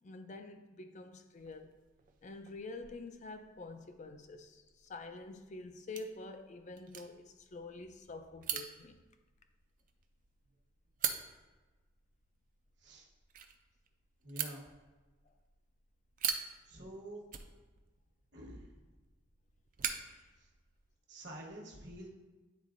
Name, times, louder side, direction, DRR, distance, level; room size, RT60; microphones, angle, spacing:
voice 1, 0.0-1.7 2.2-9.0 20.1-20.3, left 3 dB, 35° left, 0.4 m, -47 dB
sound 1, 1.3-21.0, right 8 dB, 40° right, 0.4 m, -45 dB
voice 2, 14.2-14.7 16.6-17.2 18.3-18.7 20.4-20.5 21.1-22.1, right 1 dB, 60° right, 1.1 m, -48 dB
9.3 x 4.0 x 2.5 m
head